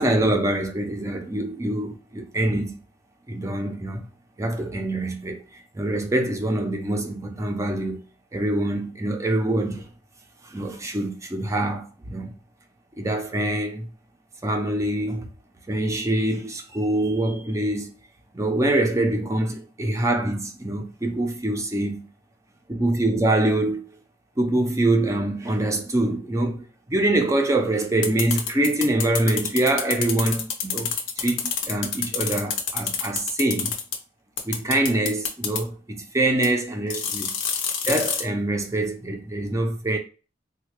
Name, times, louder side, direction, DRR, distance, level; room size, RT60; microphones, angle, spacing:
voice 1, 0.0-2.8 3.3-4.1 4.4-5.4 5.7-8.0 8.3-9.9 10.5-12.3 13.0-13.9 14.4-15.3 15.7-17.9 18.3-22.1 22.7-23.8 24.4-33.7 34.4-37.3 37.9-40.0, right 1 dB, 15° right, 0.4 m, -24 dB
sound 1, 28.0-34.0 34.4-35.6 36.4-36.5 36.9-38.2, left 7 dB, 70° left, 0.6 m, -27 dB
3.3 x 2.2 x 3.0 m
head